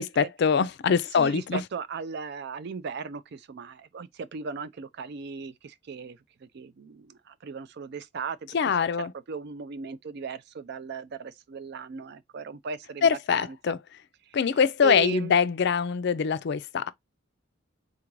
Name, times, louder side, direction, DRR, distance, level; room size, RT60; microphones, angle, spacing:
voice 1, 0.0-1.6 8.5-9.1 13.0-13.8 14.3-16.9, left 6 dB, 60° left, 0.4 m, -24 dB
voice 2, 1.2-13.7 14.2-14.4 14.8-15.3, right 6 dB, 55° right, 0.4 m, -37 dB
3.7 x 2.5 x 4.5 m
head